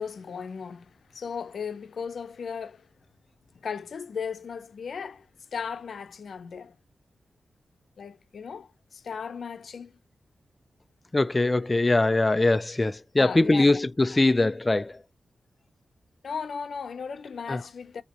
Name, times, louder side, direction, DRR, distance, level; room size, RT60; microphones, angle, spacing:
voice 1, 0.0-2.8 3.6-5.3 5.5-6.7 8.0-9.9 13.2-13.8 16.2-18.0, left 6 dB, 75° left, 0.6 m, -36 dB
voice 2, 11.1-15.0 17.5-17.6, left 2 dB, 25° left, 0.4 m, -22 dB
5.2 x 2.9 x 2.9 m
cardioid pair, 80°, 0 cm